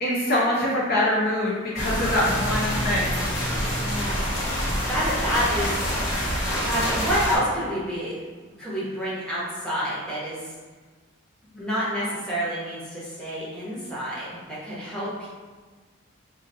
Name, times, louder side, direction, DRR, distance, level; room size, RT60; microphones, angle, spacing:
voice 1, 0.0-3.3, left 1 dB, 45° left, -5 dB, 0.6 m, -24 dB
sound 1, 1.8-7.4, equal, 75° left, 1.2 m, -26 dB
voice 2, 3.8-4.3 4.9-6.2 6.6-8.2 8.6-10.5 11.6-15.3, equal, 5° left, -9 dB, 1.1 m, -28 dB
4.8 x 2.6 x 2.7 m, 1.4 s
head